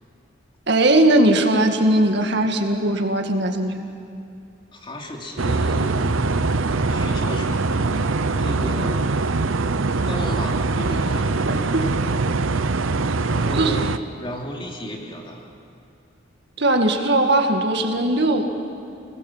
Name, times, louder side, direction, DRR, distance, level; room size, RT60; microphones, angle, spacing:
voice 1, 0.7-3.9 11.5-11.8 13.6-13.8 16.6-18.5, right 1 dB, 60° right, 4 dB, 2.1 m, -19 dB
voice 2, 4.7-6.2 6.9-7.6 8.3-9.1 10.1-11.5 13.3-15.5, equal, 25° left, 0 dB, 3.1 m, -33 dB
sound 1, 5.4-14.0, right 3 dB, 85° right, 0.8 m, -22 dB
29.5 x 21.0 x 7.5 m, 2.5 s
head